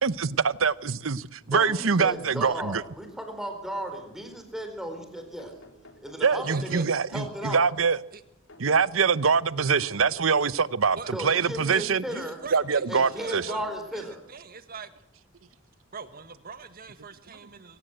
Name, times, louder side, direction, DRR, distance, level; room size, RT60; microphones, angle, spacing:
voice 1, 0.0-2.8 6.2-8.0 8.6-12.0 12.5-13.4, right 5 dB, 80° right, 0.8 m, -24 dB
voice 2, 1.4-5.5 6.0-6.8 7.1-7.7 11.1-12.4 12.9-14.2, right 1 dB, ahead, 4.2 m, -35 dB
sound 1, 1.7-3.5 4.9-7.0 8.5-10.7 12.1-14.0 14.8-14.9 16.3-16.4 16.7-16.8, left 1 dB, 70° left, 3.5 m, -53 dB
voice 3, 6.4-6.9 8.1-8.2 11.0-13.6 13.9-14.9 15.9-17.8, right 4 dB, 45° right, 1.8 m, -42 dB
24.5 x 17.0 x 8.0 m
head